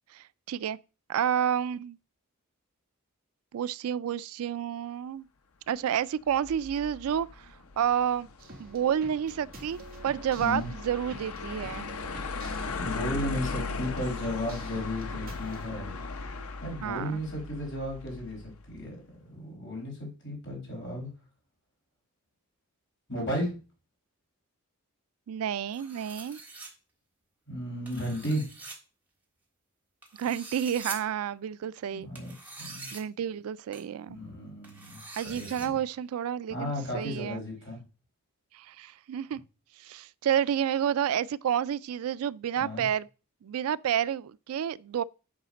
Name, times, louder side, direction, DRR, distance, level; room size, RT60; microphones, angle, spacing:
voice 1, 0.1-0.8 1.1-2.0 3.5-5.3 5.7-7.5 7.8-8.3 8.6-11.9 16.8-17.2 25.3-26.4 30.2-32.1 32.9-34.2 35.2-37.4 38.5-39.4 39.8-43.1 43.4-45.0, right 9 dB, 75° right, 0.3 m, -30 dB
sound 1, 6.3-18.5, left 4 dB, 75° left, 0.8 m, -38 dB
sound 2, 8.4-15.6, right 2 dB, 45° right, 2.0 m, -49 dB
voice 2, 10.4-10.7 12.8-15.9 16.6-21.1 23.1-23.5 27.5-28.4 31.9-32.9 34.1-35.8 36.5-37.8 42.6-42.9, equal, 55° left, 4.7 m, -34 dB
sound 3, 25.7-26.7 27.9-28.8 30.0-31.0 32.1-33.0 33.7-33.8 34.6-35.7, right 3 dB, 10° right, 1.5 m, -44 dB
8.8 x 4.9 x 5.1 m
head